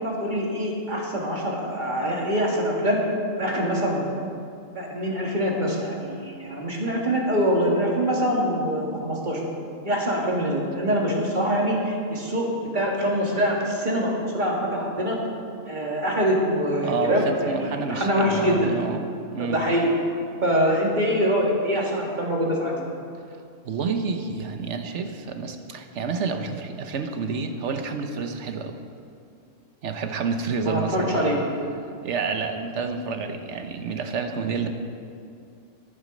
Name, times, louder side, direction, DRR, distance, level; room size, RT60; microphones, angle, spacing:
voice 1, 0.0-3.0 3.4-4.0 4.7-9.4 9.8-12.5 12.7-15.2 15.6-18.7 19.4-19.9 20.4-22.7 30.6-31.4, equal, 35° right, -2 dB, 1.9 m, -24 dB
voice 2, 16.8-19.0 19.3-19.6 23.6-28.8 29.8-31.3 32.0-34.7, right 5 dB, 65° right, 7 dB, 1.1 m, -29 dB
10.5 x 10.5 x 5.2 m, 2.4 s
omnidirectional pair, 1.3 m